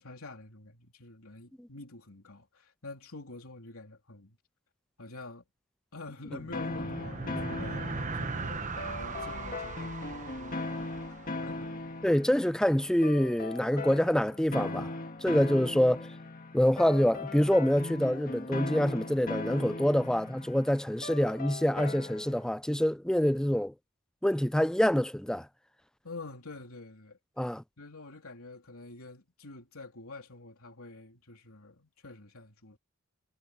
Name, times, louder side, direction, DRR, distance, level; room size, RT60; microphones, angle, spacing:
voice 1, 0.0-4.4 5.0-5.4 5.9-7.9 8.1-11.8 15.5-15.8 26.0-32.8, left 3 dB, 70° left, 3.3 m, -47 dB
sound 1, 6.3-12.0, right 3 dB, 35° right, 1.1 m, -39 dB
sound 2, 6.5-22.4, left 2 dB, 40° left, 1.9 m, -39 dB
voice 2, 12.0-14.9 15.2-16.1 16.5-23.7 24.2-25.5 27.4-27.6, equal, 5° left, 0.4 m, -26 dB
head